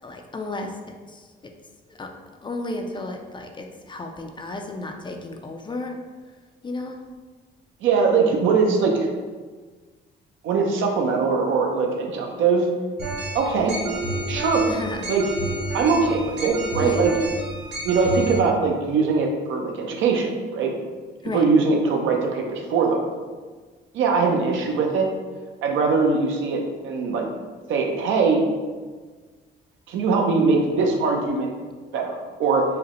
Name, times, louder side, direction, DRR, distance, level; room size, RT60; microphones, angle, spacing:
voice 1, 0.0-0.7 1.1-1.5 1.9-2.1 2.4-5.9 6.6-7.0 14.7-15.1 16.8-17.0 21.2-21.4, left 2 dB, 25° left, 3 dB, 0.4 m, -33 dB
voice 2, 7.8-9.1 10.4-12.7 13.3-13.8 14.3-14.7 15.1-15.2 15.7-17.1 17.8-20.7 21.3-23.0 23.9-25.1 25.6-27.3 27.7-28.4 29.9-31.5 31.9-32.6, right 4 dB, 75° right, 1 dB, 0.6 m, -21 dB
sound 1, 13.0-18.4, right 2 dB, 60° right, 1.2 m, -30 dB
4.8 x 2.1 x 3.0 m, 1.4 s
cardioid pair, 90°, 20 cm